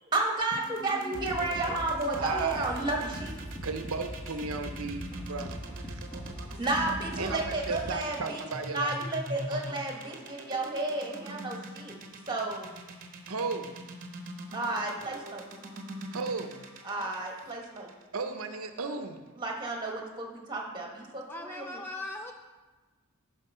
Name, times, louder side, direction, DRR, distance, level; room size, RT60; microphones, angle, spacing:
voice 1, 0.1-3.3 6.6-8.4 8.7-11.9 12.3-12.7 14.5-15.4 16.8-17.9 19.4-21.8, right 2 dB, 20° right, 0 dB, 1.4 m, -32 dB
sound 1, 0.5-18.6, right 1 dB, 40° right, 0.9 m, -43 dB
sound 2, 1.1-7.9, equal, 25° left, 1.7 m, -41 dB
voice 2, 2.1-2.7 3.6-5.6 5.9-6.5 7.2-8.9 9.7-9.8 13.3-13.7 16.1-16.6 18.1-19.2, right 4 dB, 80° right, 7 dB, 0.7 m, -35 dB
voice 3, 21.3-22.3, left 2 dB, 10° left, 3 dB, 0.4 m, -40 dB
11.0 x 5.0 x 5.5 m, 1.3 s
head